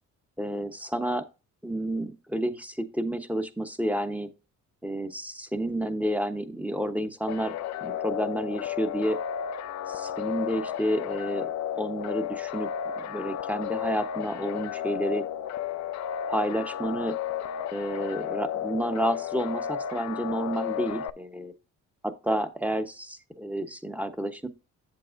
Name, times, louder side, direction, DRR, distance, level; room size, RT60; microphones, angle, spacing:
voice 1, 0.4-1.3 1.6-4.3 4.8-7.5 7.8-9.2 9.9-11.5 11.7-12.7 13.0-15.2 16.3-17.2 17.7-21.5 22.0-24.5, right 1 dB, 5° right, 8 dB, 1.0 m, -30 dB
sound 1, 7.3-21.1, left 9 dB, 65° left, 0.5 m, -33 dB
8.3 x 7.6 x 2.6 m, 0.31 s
cardioid pair, 90°, 30 cm